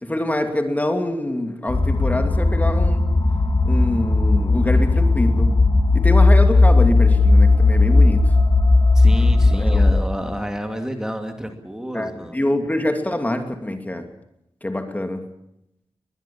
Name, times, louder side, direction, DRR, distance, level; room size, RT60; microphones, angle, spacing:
voice 1, 0.0-3.1 3.6-5.5 5.9-8.3 9.2-10.0 11.9-14.1 14.6-15.3, left 1 dB, 15° left, 6 dB, 2.7 m, -25 dB
sound 1, 1.7-10.0, left 3 dB, 40° left, 2.5 m, -16 dB
voice 2, 8.9-12.4, equal, 5° right, 5 dB, 2.4 m, -29 dB
22.0 x 21.0 x 7.2 m, 0.81 s
wide cardioid pair, 100°, 10 cm